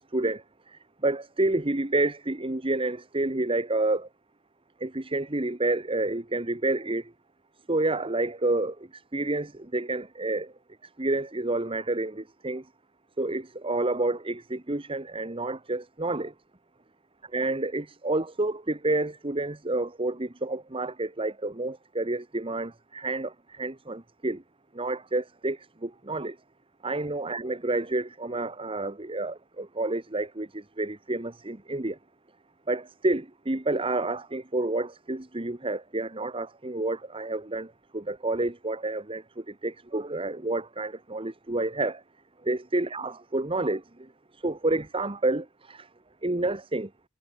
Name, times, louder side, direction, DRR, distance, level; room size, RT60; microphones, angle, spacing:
voice 1, 1.0-4.1 4.8-7.0 7.7-8.7 9.1-10.5 11.0-12.6 13.2-16.3 17.3-24.4 24.7-26.3 26.8-30.5 30.8-32.0 32.7-37.7 37.9-39.2 39.6-42.0 42.4-43.8 44.4-45.8 46.2-46.9, right 2 dB, 25° right, 1.2 m, -29 dB
head